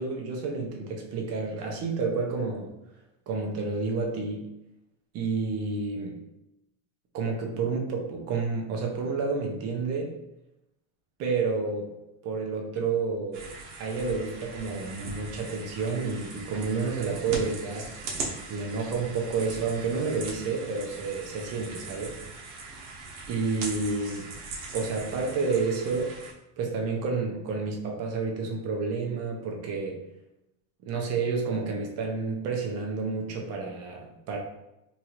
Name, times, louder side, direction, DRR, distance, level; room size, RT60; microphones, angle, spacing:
voice 1, 0.0-2.7 3.3-4.5 5.1-6.2 7.1-10.2 11.2-11.9 12.2-13.5 13.8-17.9 18.5-22.2 23.3-24.3 24.7-26.1 26.6-30.0 30.8-34.4, right 4 dB, 40° right, 1 dB, 0.7 m, -30 dB
sound 1, 13.3-26.3, right 3 dB, 75° right, 1.0 m, -40 dB
2.9 x 2.4 x 2.9 m, 0.90 s
supercardioid pair, 135°, 38 cm